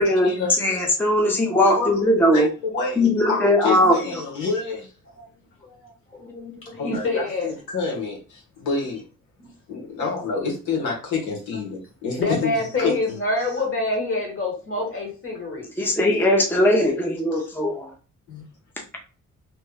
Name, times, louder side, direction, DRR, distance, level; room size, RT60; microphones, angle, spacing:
voice 1, 0.0-1.0 1.8-2.0 2.3-4.9 6.8-9.0 9.7-12.5 12.8-12.9 17.3-17.5 18.3-18.4, left 4 dB, 75° left, -1 dB, 1.3 m, -28 dB
voice 2, 0.6-2.5 3.0-4.0 6.4-6.5 15.8-17.9, left 1 dB, 5° left, 1 dB, 0.7 m, -19 dB
voice 3, 6.8-7.5 10.0-10.1 12.2-15.7, left 2 dB, 45° left, 0 dB, 1.8 m, -25 dB
3.1 x 2.3 x 3.4 m, 0.35 s
cardioid pair, 90°, 30 cm